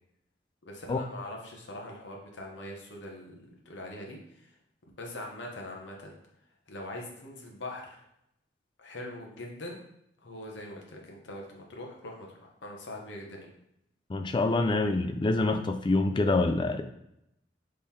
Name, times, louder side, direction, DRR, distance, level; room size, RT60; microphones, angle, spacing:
voice 1, 0.6-4.5 5.0-6.1 6.7-8.0 8.8-9.8 10.2-13.5, left 1 dB, 80° left, 0 dB, 1.0 m, -42 dB
voice 2, 14.1-16.8, left 2 dB, 25° left, 7 dB, 0.3 m, -26 dB
3.7 x 3.3 x 4.2 m, 0.80 s
head